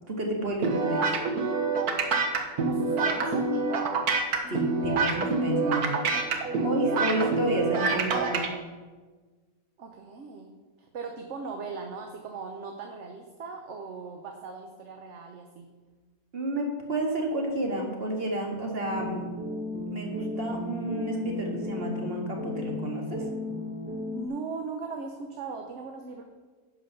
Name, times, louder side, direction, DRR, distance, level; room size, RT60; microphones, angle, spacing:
voice 1, 0.1-1.0 4.5-8.5 16.3-19.6 19.9-23.2, right 1 dB, 40° right, 0 dB, 2.1 m, -31 dB
sound 1, 0.6-8.5, right 4 dB, 85° right, 1.6 m, -26 dB
voice 2, 2.6-3.9 6.6-7.5 7.9-8.6 9.8-10.5 10.8-15.7 24.1-26.2, right 4 dB, 55° right, 4 dB, 1.1 m, -39 dB
sound 2, 18.9-24.3, left 2 dB, 10° right, 0.7 m, -34 dB
10.5 x 5.6 x 6.7 m, 1.4 s
omnidirectional pair, 1.6 m